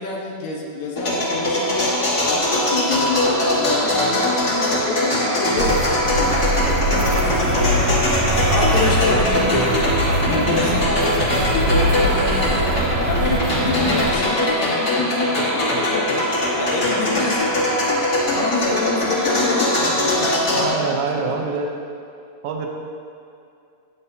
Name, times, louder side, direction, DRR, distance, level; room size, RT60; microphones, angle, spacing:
voice 1, 0.0-2.0 2.3-5.7 6.3-7.7 8.5-9.8 10.3-17.6 18.3-20.9 21.3-21.4, left 3 dB, 75° left, -2 dB, 2.5 m, -27 dB
sound 1, 1.0-20.7, left 1 dB, 35° left, 2.6 m, -21 dB
sound 2, 5.6-14.2, right 1 dB, 60° right, 1.8 m, -22 dB
voice 2, 20.6-21.7 22.4-22.7, right 4 dB, 80° right, 1 dB, 2.2 m, -24 dB
19.0 x 7.6 x 2.8 m, 2.5 s
omnidirectional pair, 3.4 m